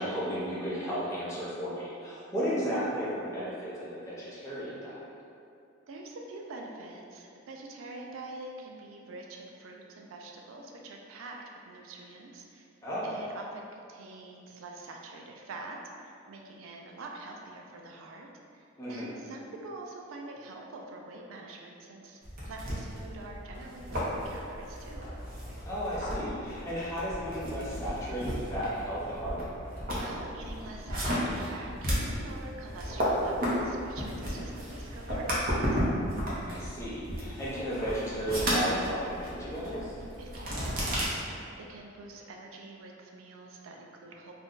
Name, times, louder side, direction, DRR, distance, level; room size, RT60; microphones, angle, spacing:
voice 1, 0.0-5.0 12.8-13.2 18.8-19.1 25.6-29.4 36.4-39.9, equal, 15° left, -9 dB, 0.6 m, -34 dB
voice 2, 5.9-11.4 11.7-12.7 13.0-18.3 18.5-22.2 22.4-25.0 30.0-35.8 40.2-41.2 41.6-44.3, right 2 dB, 85° right, 0 dB, 0.4 m, -45 dB
sound 1, 22.2-41.1, equal, 45° right, 0.7 m, -34 dB
2.5 x 2.2 x 3.6 m, 2.6 s
head